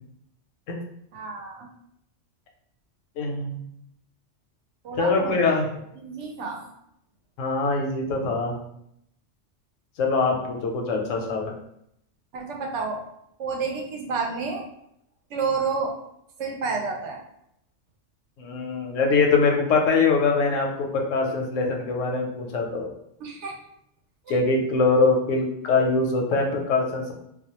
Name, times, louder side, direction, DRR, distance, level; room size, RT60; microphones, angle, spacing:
voice 1, 1.1-1.7 4.8-6.7 12.3-13.0 13.4-14.7 15.3-16.0 16.4-17.2 23.2-23.6 24.3-24.4, right 4 dB, 70° right, 1 dB, 0.8 m, -30 dB
voice 2, 3.2-3.6 5.0-5.7 7.4-8.5 10.0-11.5 18.4-22.9 24.3-27.1, left 4 dB, 85° left, 1 dB, 0.9 m, -23 dB
2.3 x 2.1 x 2.8 m, 0.75 s
omnidirectional pair, 1.3 m